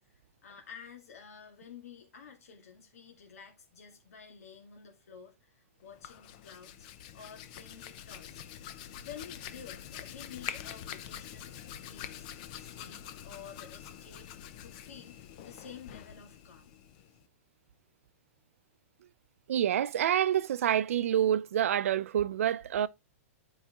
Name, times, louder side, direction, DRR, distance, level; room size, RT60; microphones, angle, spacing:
voice 1, 0.1-6.9 7.1-8.4 8.9-12.3 12.6-14.3 14.6-16.7, left 7 dB, 90° left, 2.0 m, -51 dB
Hands, 5.8-17.3, left 10 dB, 35° left, 0.5 m, -45 dB
voice 2, 19.5-22.9, right 10 dB, 70° right, 0.5 m, -27 dB
10.5 x 4.8 x 2.9 m
supercardioid pair, 170°, 8 cm